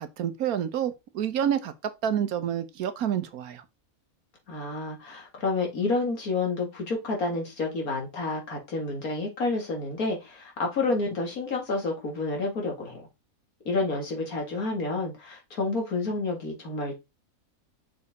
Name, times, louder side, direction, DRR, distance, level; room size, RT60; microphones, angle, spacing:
voice 1, 0.0-1.7 2.0-3.6, right 9 dB, 90° right, 1.4 m, -28 dB
voice 2, 4.5-13.1 13.6-16.9, left 3 dB, 80° left, 2.7 m, -29 dB
6.3 x 4.3 x 4.1 m
omnidirectional pair, 1.5 m